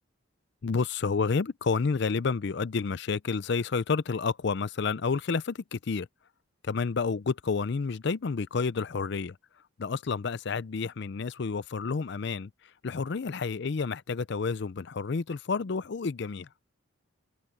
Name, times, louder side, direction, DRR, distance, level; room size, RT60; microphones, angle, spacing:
voice 1, 0.6-6.1 6.6-9.4 9.8-12.5 12.8-16.5, left 4 dB, 55° left, 0.5 m, -30 dB
head